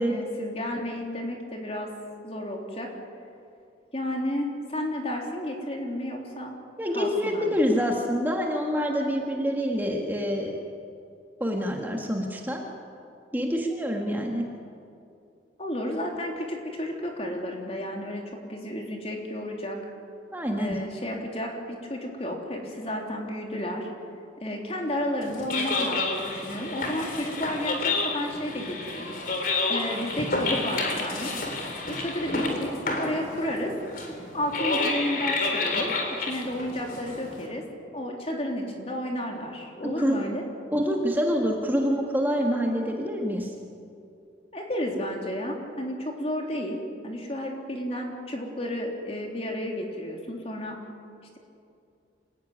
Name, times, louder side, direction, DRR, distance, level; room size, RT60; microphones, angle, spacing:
voice 1, 0.0-1.9 2.2-2.9 3.9-6.5 6.9-7.6 15.6-19.8 20.6-23.9 24.4-29.1 29.7-31.3 32.0-33.7 34.3-37.6 37.9-40.4 44.5-50.8, left 1 dB, 35° left, 1 dB, 3.4 m, -32 dB
voice 2, 6.8-10.6 11.4-12.6 13.3-14.5 20.3-20.8 40.0-40.2 40.7-43.5, equal, 10° right, 1 dB, 2.0 m, -26 dB
sound 1, 25.2-37.5, left 3 dB, 50° left, 3.9 m, -30 dB
26.5 x 16.5 x 9.7 m, 2.5 s
head